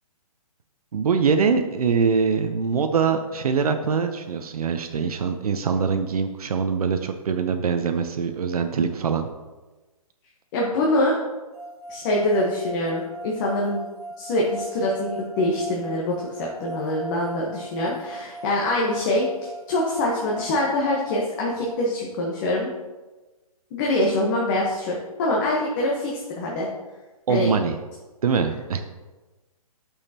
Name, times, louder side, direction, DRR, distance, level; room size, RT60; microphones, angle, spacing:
voice 1, 0.9-9.3 27.3-27.7 28.2-28.8, right 5 dB, 75° right, 6 dB, 0.7 m, -23 dB
voice 2, 10.5-11.2 11.9-13.8 14.2-22.7 23.7-26.7 27.3-27.5, left 1 dB, 30° left, -3 dB, 1.1 m, -24 dB
sound 1, 11.5-21.7, right 1 dB, 15° right, 0.8 m, -38 dB
8.9 x 6.5 x 2.8 m, 1.2 s
hypercardioid pair, 150°, 19 cm